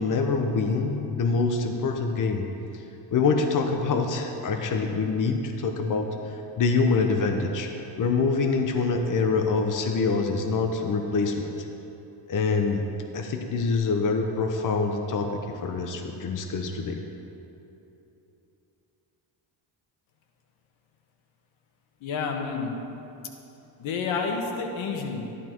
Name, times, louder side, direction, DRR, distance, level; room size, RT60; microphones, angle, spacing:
voice 1, 0.0-2.4 3.1-6.1 6.6-7.7 8.0-11.5 12.3-12.8 13.1-17.0, left 4 dB, 40° left, 4 dB, 1.1 m, -25 dB
voice 2, 22.0-22.7 23.8-25.2, left 5 dB, 80° left, 3 dB, 1.6 m, -29 dB
13.5 x 12.0 x 4.6 m, 3.0 s
cardioid pair, 125°, 46 cm